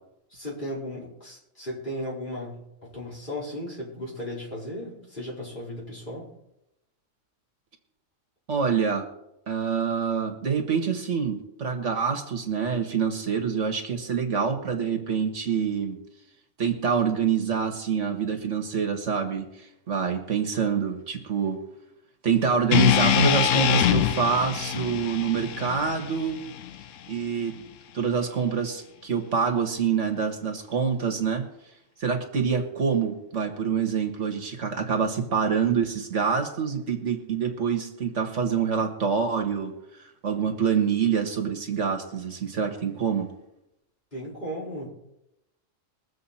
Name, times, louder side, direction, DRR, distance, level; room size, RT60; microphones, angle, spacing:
voice 1, 0.3-6.3 44.1-44.9, equal, 40° left, -5 dB, 4.8 m, -36 dB
voice 2, 8.5-9.1 9.5-16.0 16.6-19.5 19.9-21.6 22.2-26.4 27.1-27.5 27.9-31.4 32.0-43.3, right 6 dB, 65° right, 4 dB, 1.9 m, -26 dB
sound 1, 22.7-26.9, left 9 dB, 75° left, 1.0 m, -24 dB
22.0 x 7.6 x 4.3 m, 0.85 s
omnidirectional pair, 1.3 m